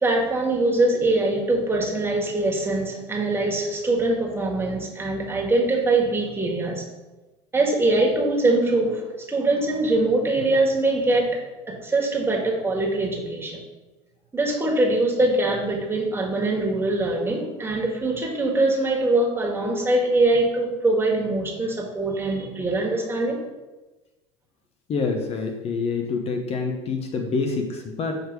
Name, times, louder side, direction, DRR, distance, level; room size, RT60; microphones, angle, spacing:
voice 1, 0.0-6.8 7.5-11.4 11.7-13.6 14.3-23.4, right 2 dB, 15° right, -1 dB, 1.6 m, -23 dB
voice 2, 24.9-28.2, left 4 dB, 40° left, 3 dB, 0.8 m, -26 dB
6.5 x 3.2 x 4.7 m, 1.2 s
hypercardioid pair, 75°, 16 cm